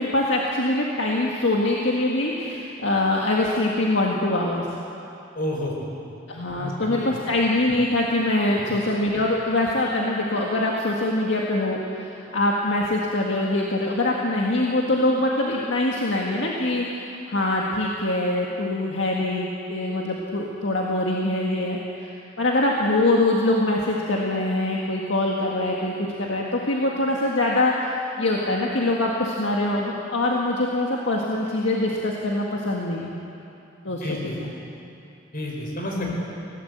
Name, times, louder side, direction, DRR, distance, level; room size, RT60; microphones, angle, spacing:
voice 1, 0.0-4.7 6.3-33.1 33.8-34.5 36.0-36.2, left 2 dB, 70° left, -2 dB, 1.9 m, -24 dB
voice 2, 5.3-6.0 6.5-6.7 7.1-7.2 34.0-34.3 35.3-36.2, left 1 dB, 50° left, -1 dB, 4.9 m, -30 dB
20.5 x 17.0 x 8.1 m, 2.7 s
head